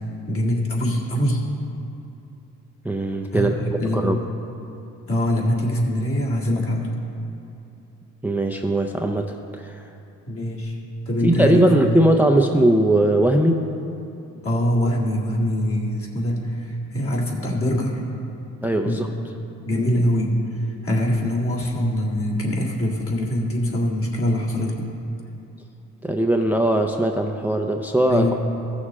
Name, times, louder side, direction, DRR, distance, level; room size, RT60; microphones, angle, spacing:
voice 1, 0.3-1.5 3.3-4.1 5.1-6.9 10.3-10.8 11.1-12.0 14.4-18.0 18.8-19.0 19.7-24.9 28.1-28.4, left 1 dB, 45° left, -3 dB, 1.9 m, -23 dB
voice 2, 2.8-4.2 8.2-9.9 11.2-13.8 18.6-19.1 26.0-28.3, right 1 dB, 5° right, 3 dB, 0.4 m, -20 dB
15.0 x 6.4 x 3.7 m, 2.9 s
cardioid pair, 90°, 30 cm